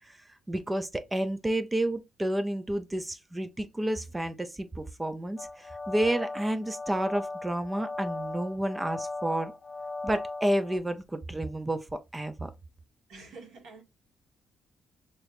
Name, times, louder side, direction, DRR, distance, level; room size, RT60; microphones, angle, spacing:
voice 1, 0.5-9.5 10.0-12.5, right 1 dB, 15° right, 0.4 m, -30 dB
sound 1, 5.4-10.8, left 3 dB, 40° left, 0.6 m, -37 dB
voice 2, 13.1-13.8, right 3 dB, 75° right, 1.8 m, -47 dB
4.4 x 3.2 x 2.5 m
cardioid pair, 90°, 0 cm